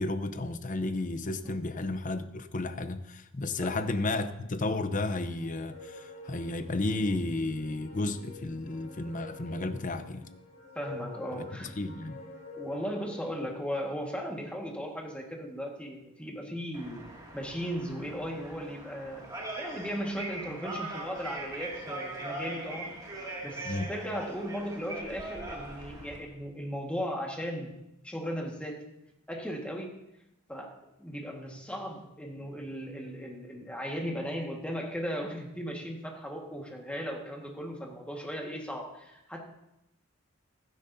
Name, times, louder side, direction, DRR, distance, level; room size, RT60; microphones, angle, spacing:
voice 1, 0.0-10.3 11.4-12.2 23.7-23.9, left 2 dB, 40° left, 10 dB, 0.7 m, -33 dB
sound 1, 5.4-13.5, left 3 dB, 65° left, 4.1 m, -48 dB
voice 2, 10.8-11.7 12.6-17.0 17.3-19.3 19.5-23.0 23.4-27.7 28.0-28.8 29.3-30.0 30.5-39.4, equal, 5° left, 0 dB, 1.6 m, -37 dB
sound 2, 16.7-26.2, right 2 dB, 20° right, 2.2 m, -41 dB
15.5 x 12.0 x 2.7 m, 0.88 s
head